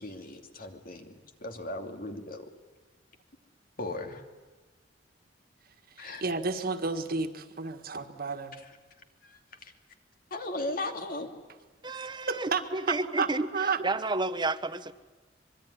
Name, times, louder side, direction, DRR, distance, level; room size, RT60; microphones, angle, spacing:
voice 1, 0.0-2.5 3.8-4.2 6.0-6.2 9.2-9.7 10.3-11.3, left 2 dB, 50° left, 2.7 m, -37 dB
voice 2, 6.0-8.5 11.9-13.8, right 4 dB, 55° right, 1.8 m, -32 dB
voice 3, 11.8-13.5 13.8-14.9, right 2 dB, 25° right, 1.0 m, -31 dB
25.0 x 23.0 x 9.9 m
head